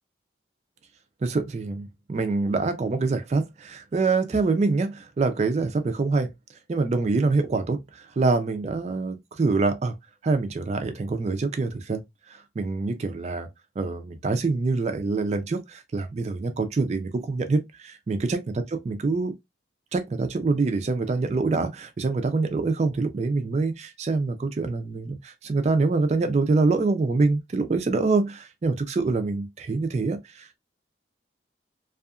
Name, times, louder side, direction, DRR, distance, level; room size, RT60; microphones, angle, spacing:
voice 1, 1.2-6.3 6.7-9.9 10.2-12.0 12.3-13.5 13.8-18.4 18.9-19.3 19.9-30.6, right 3 dB, 40° right, 0.3 m, -25 dB
2.7 x 2.4 x 2.3 m
head